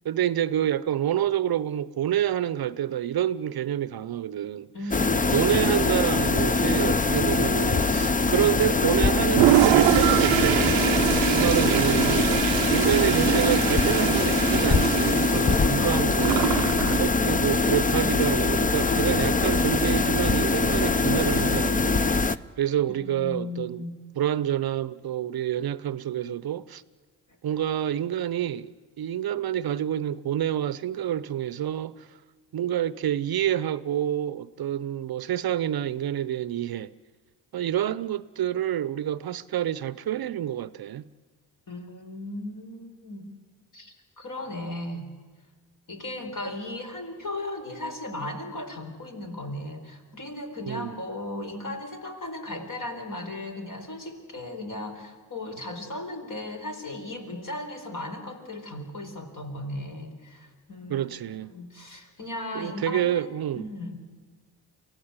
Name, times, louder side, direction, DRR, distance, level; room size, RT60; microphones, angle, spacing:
voice 1, 0.0-4.7 5.3-16.5 17.0-23.8 24.2-26.8 27.4-32.1 32.5-36.9 37.5-41.1 50.7-51.0 60.9-61.5 62.5-63.7, right 11 dB, 55° right, 0.7 m, -28 dB
voice 2, 4.7-5.9 15.3-16.2 22.9-24.0 41.7-43.3 43.7-45.0 45.9-64.0, left 1 dB, 45° left, 4.6 m, -37 dB
sound 1, 4.9-22.4, left 3 dB, 20° left, 0.7 m, -23 dB
Toilet flush, 9.2-17.1, right 18 dB, 90° right, 0.6 m, -24 dB
23.5 x 16.0 x 9.7 m
supercardioid pair, 50°, 45 cm